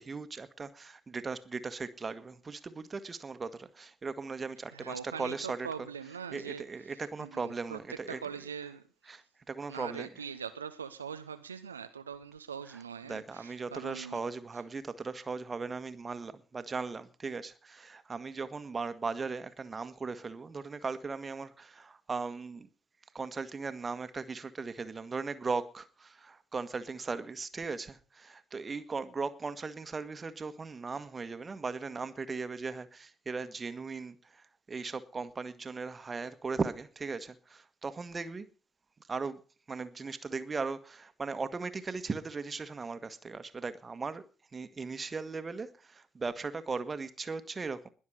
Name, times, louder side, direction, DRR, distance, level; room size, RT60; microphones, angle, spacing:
voice 1, 0.0-5.7 6.3-8.2 9.1-10.1 13.1-22.7 23.1-38.5 39.1-39.4 39.7-44.2 44.5-47.9, right 4 dB, 30° right, 1.7 m, -38 dB
voice 2, 4.7-8.9 9.7-14.2, right 7 dB, 85° right, 0.7 m, -42 dB
21.0 x 7.3 x 6.5 m
figure-of-eight pair, 50°, 0 cm